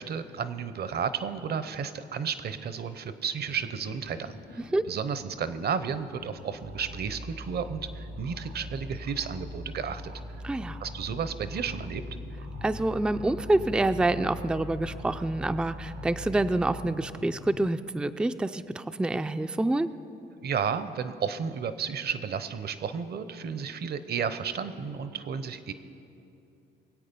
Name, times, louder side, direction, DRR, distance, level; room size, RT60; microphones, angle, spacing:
voice 1, 0.0-10.0 10.8-12.0 20.4-25.7, right 6 dB, 55° right, 12 dB, 0.8 m, -32 dB
sound 1, 3.4-17.7, left 6 dB, 50° left, 0.7 m, -47 dB
sound 2, 6.6-16.8, right 1 dB, 80° right, 2.1 m, -42 dB
voice 2, 10.4-10.8 12.6-19.9, right 2 dB, 5° right, 10 dB, 0.4 m, -27 dB
22.5 x 8.4 x 5.3 m, 2.7 s
cardioid pair, 90°, 20 cm